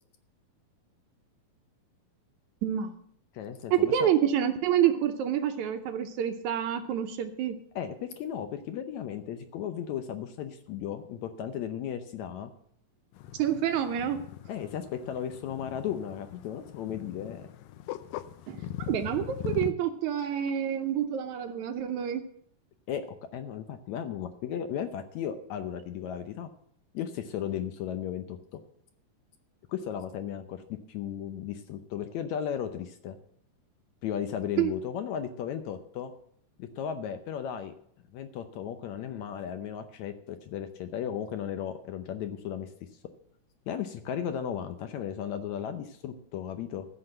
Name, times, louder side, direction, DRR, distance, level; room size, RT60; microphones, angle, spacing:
voice 1, 2.6-2.9 3.7-7.6 13.4-14.2 18.5-22.2 34.6-34.7, right 10 dB, 75° right, 7 dB, 2.0 m, -28 dB
voice 2, 3.3-4.1 7.8-12.5 14.5-17.5 22.9-23.1 23.3-26.5 26.9-28.6 29.7-33.2 34.0-36.1 36.6-37.7 38.1-42.7 43.7-46.9, left 9 dB, 70° left, 8 dB, 1.9 m, -35 dB
sound 1, 13.1-19.7, left 12 dB, 90° left, 2.3 m, -40 dB
15.0 x 6.1 x 7.7 m, 0.67 s
omnidirectional pair, 3.8 m